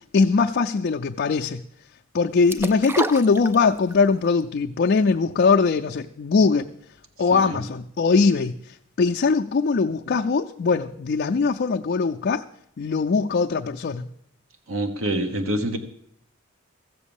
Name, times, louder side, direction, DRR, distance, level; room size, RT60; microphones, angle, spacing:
voice 1, 0.1-1.6 2.1-6.7 7.2-8.5 9.0-12.4 12.8-14.1, left 4 dB, 50° left, 2 dB, 0.4 m, -21 dB
sound 1, 2.5-4.0 4.4-4.5, right 2 dB, 10° right, 0.4 m, -29 dB
voice 2, 14.7-15.8, right 1 dB, 70° right, 7 dB, 1.1 m, -26 dB
14.5 x 7.3 x 7.1 m, 0.72 s
head